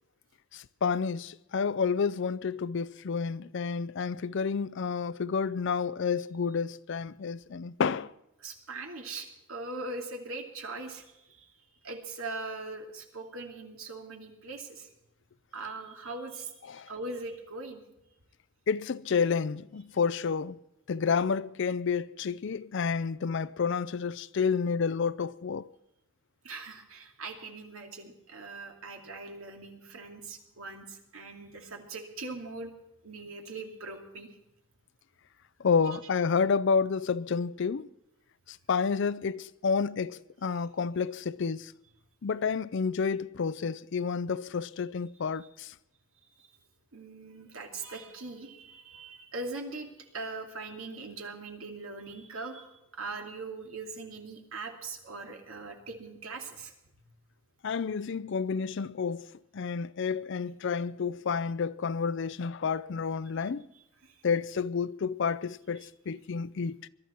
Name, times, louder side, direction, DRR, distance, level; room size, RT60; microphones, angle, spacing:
voice 1, 0.5-8.1 16.7-16.9 18.7-20.6 20.9-25.7 35.6-37.9 38.5-41.7 42.2-45.7 57.6-59.3 59.5-63.7 64.2-66.8, left 5 dB, 60° left, 0.4 m, -30 dB
voice 2, 8.4-11.5 11.8-14.9 15.5-16.5 16.8-17.8 26.4-32.7 33.0-34.3 35.9-36.0 45.4-45.5 46.4-46.5 46.9-56.7 64.0-64.2 65.8-65.9, right 3 dB, 75° right, 2.5 m, -41 dB
22.0 x 12.5 x 4.4 m
head